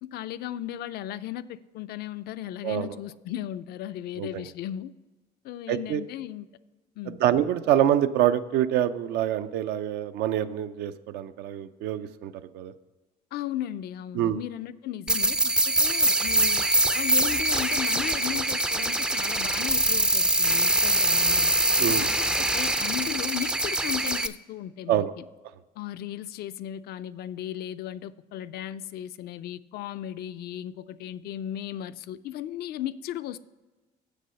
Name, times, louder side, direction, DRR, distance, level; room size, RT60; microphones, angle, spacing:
voice 1, 0.0-4.9 5.4-6.5 7.0-7.2 13.3-16.6 17.0-21.5 21.9-22.1 22.4-25.2 25.8-33.4, left 12 dB, 70° left, 13 dB, 0.4 m, -36 dB
voice 2, 2.6-3.0 4.2-4.5 5.7-6.0 7.1-12.7 14.1-14.4 21.8-22.1 24.9-25.1, right 11 dB, 85° right, 11 dB, 0.5 m, -26 dB
sound 1, 15.1-24.3, right 1 dB, 5° right, 0.3 m, -24 dB
7.6 x 6.6 x 5.5 m, 1.2 s
cardioid pair, 110°, 17 cm